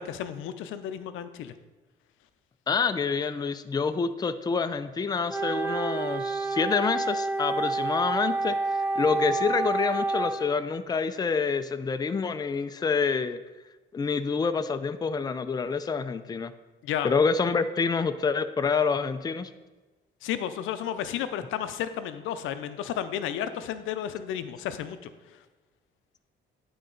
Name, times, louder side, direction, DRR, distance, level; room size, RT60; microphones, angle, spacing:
voice 1, 0.0-1.5 16.8-17.1 20.2-25.4, left 10 dB, 90° left, 11 dB, 0.5 m, -33 dB
voice 2, 2.7-13.4 13.9-16.5 17.0-19.5, left 5 dB, 20° left, 11 dB, 0.4 m, -27 dB
Wind instrument woodwind instrument, 5.3-10.5, right 3 dB, 10° right, 0.7 m, -28 dB
10.5 x 3.9 x 3.9 m, 1.2 s
cardioid pair, 90°, 20 cm